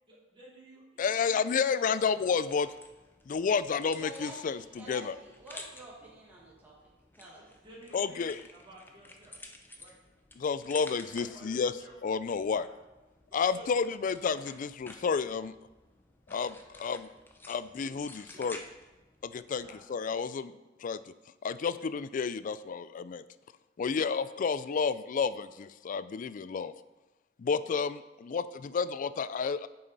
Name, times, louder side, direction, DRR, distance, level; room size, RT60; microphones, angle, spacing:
voice 1, 0.1-2.6 7.2-9.4 9.7-10.0 10.8-11.9 12.5-12.7 13.3-13.7 17.4-17.6 18.2-18.5 19.4-19.8 23.8-24.1, right 1 dB, 25° right, -6 dB, 3.2 m, -54 dB
voice 2, 1.0-2.7 3.3-5.2 7.9-8.4 10.4-11.7 12.0-12.7 13.3-15.5 16.3-17.1 17.5-18.6 19.2-20.6 20.8-21.0 21.4-23.2 23.8-26.7 27.4-29.7, left 5 dB, 45° left, 15 dB, 0.3 m, -31 dB
sound 1, 2.5-19.8, left 2 dB, 10° left, 0.7 m, -52 dB
voice 3, 4.0-6.9 7.2-7.5, right 1 dB, 10° right, -5 dB, 1.6 m, -48 dB
8.7 x 6.8 x 4.1 m, 1.1 s
head